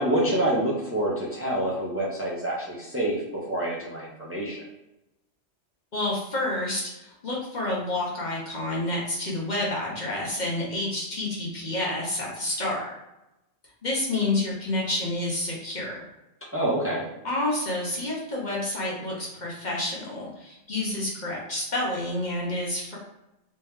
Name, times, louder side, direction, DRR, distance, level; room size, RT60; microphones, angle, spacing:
voice 1, 0.0-4.6 16.5-17.1, right 1 dB, 15° right, -5 dB, 0.7 m, -27 dB
voice 2, 5.9-12.9 13.8-16.0 17.2-23.0, left 2 dB, 45° left, -4 dB, 1.0 m, -29 dB
3.2 x 3.0 x 3.5 m, 0.92 s
omnidirectional pair, 1.1 m